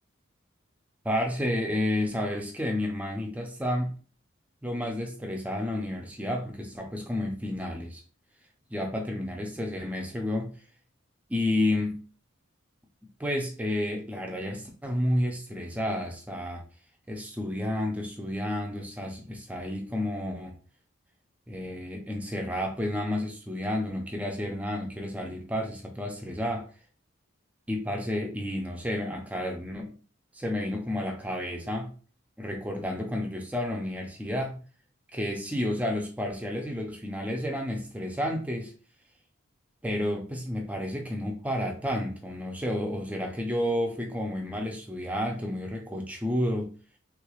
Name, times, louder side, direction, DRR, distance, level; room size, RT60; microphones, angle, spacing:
voice 1, 1.0-3.9 4.6-8.0 8.7-10.5 11.3-12.0 13.2-16.6 17.1-20.6 21.5-26.7 27.7-29.9 30.3-31.9 32.4-34.6 35.1-38.7 39.8-46.7, left 1 dB, 5° right, 0.4 m, -31 dB
3.4 x 3.1 x 2.3 m
head